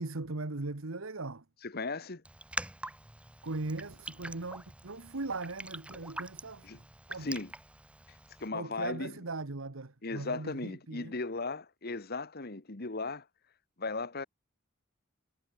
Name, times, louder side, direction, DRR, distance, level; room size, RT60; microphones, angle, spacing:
voice 1, 0.0-1.4 3.4-7.3 8.5-11.1, right 3 dB, 80° right, 1.4 m, -39 dB
voice 2, 1.6-2.2 6.6-6.8 7.2-7.5 8.1-9.1 10.0-13.3 13.8-14.3, left 3 dB, 50° left, 1.4 m, -37 dB
Raindrop, 2.2-8.5, right 1 dB, 5° right, 1.2 m, -44 dB
head